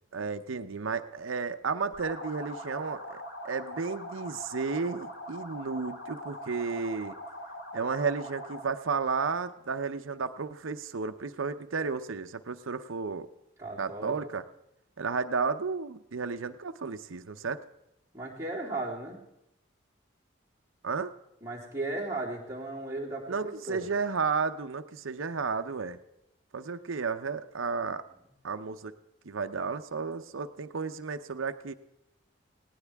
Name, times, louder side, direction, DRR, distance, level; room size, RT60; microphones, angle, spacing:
voice 1, 0.1-7.1 7.7-13.3 13.8-14.4 15.0-17.6 20.8-21.1 23.3-26.0 26.5-28.0 28.4-28.9 29.2-31.7, right 5 dB, 85° right, 9 dB, 0.7 m, -33 dB
sound 1, 1.9-8.7, left 1 dB, 90° left, 3.9 m, -42 dB
voice 2, 13.6-14.3 18.1-19.2 21.4-23.4 23.7-23.9, right 2 dB, 15° right, -6 dB, 3.4 m, -36 dB
18.0 x 17.5 x 3.5 m, 0.85 s
head